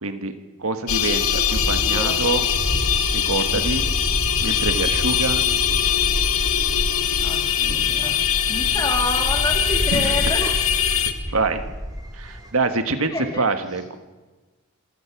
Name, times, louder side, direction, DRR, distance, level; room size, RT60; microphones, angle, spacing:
voice 1, 0.0-2.5 3.1-3.9 4.4-5.4 9.9-10.1 11.3-11.7 12.1-14.0, right 3 dB, 70° right, 8 dB, 1.6 m, -25 dB
sound 1, 0.9-11.1, left 8 dB, 75° left, 1.7 m, -22 dB
voice 2, 1.5-2.2 7.2-8.2 8.5-10.5 13.1-13.5, left 1 dB, 15° left, 1 dB, 3.3 m, -28 dB
sound 2, 1.5-12.5, equal, 15° right, 3.2 m, -31 dB
27.5 x 15.5 x 6.1 m, 1.2 s
head